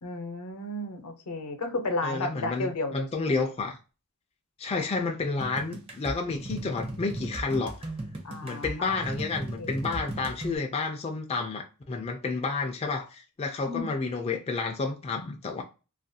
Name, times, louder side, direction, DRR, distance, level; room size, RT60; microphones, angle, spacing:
voice 1, 0.0-3.4 8.2-9.0 9.6-9.8 13.7-14.0, left 2 dB, 90° left, 0.7 m, -33 dB
voice 2, 2.0-3.8 4.6-7.8 8.4-15.6, left 4 dB, 30° left, 0.3 m, -30 dB
sound 1, 5.4-10.6, right 1 dB, 25° right, 0.6 m, -37 dB
2.4 x 2.2 x 2.6 m
head